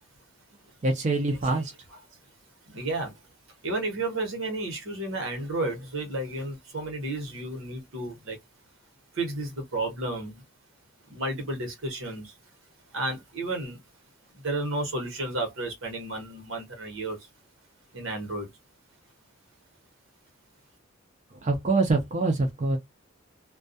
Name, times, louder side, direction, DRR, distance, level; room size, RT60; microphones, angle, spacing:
voice 1, 0.8-1.7 21.3-22.8, right 2 dB, 35° right, 0.5 m, -25 dB
voice 2, 2.7-3.2 3.6-8.4 9.1-10.4 11.1-12.4 12.9-13.8 14.3-17.3 17.9-18.5, right 2 dB, 75° right, 1.0 m, -32 dB
2.3 x 2.2 x 2.6 m
head